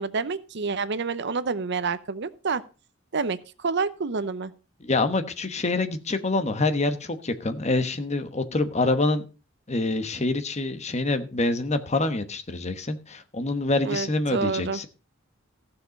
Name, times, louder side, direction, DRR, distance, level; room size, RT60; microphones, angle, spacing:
voice 1, 0.0-2.6 3.1-4.5 13.8-14.8, right 4 dB, 60° right, 15 dB, 0.7 m, -28 dB
voice 2, 4.8-9.2 9.7-14.9, left 2 dB, 35° left, 9 dB, 1.1 m, -26 dB
15.0 x 6.7 x 5.2 m, 0.33 s
head